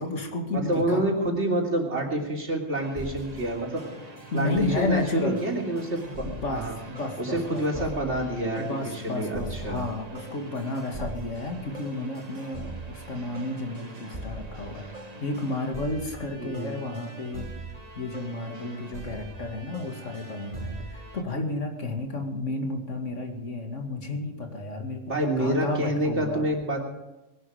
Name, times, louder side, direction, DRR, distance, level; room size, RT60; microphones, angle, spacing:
voice 1, 0.0-1.0 4.3-5.4 6.2-7.9 8.6-14.9 15.2-17.5 17.9-26.5, left 2 dB, 75° left, 3 dB, 2.6 m, -32 dB
voice 2, 0.5-3.8 4.3-6.7 7.2-8.6 9.0-9.8 16.4-16.8 25.1-26.8, right 1 dB, 65° right, 0 dB, 3.5 m, -28 dB
sound 1, 2.7-21.2, right 2 dB, 35° right, 1.6 m, -41 dB
20.5 x 12.0 x 5.1 m, 0.99 s
omnidirectional pair, 1.3 m